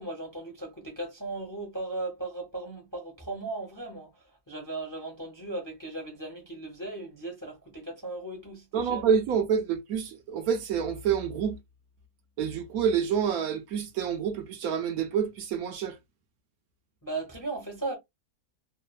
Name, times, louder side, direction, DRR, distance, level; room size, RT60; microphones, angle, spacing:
voice 1, 0.0-9.0 17.0-18.0, right 2 dB, 20° left, 0.6 m, -37 dB
voice 2, 8.7-11.6 12.4-16.0, right 7 dB, 75° right, 1.0 m, -27 dB
3.1 x 2.1 x 2.3 m
omnidirectional pair, 1.7 m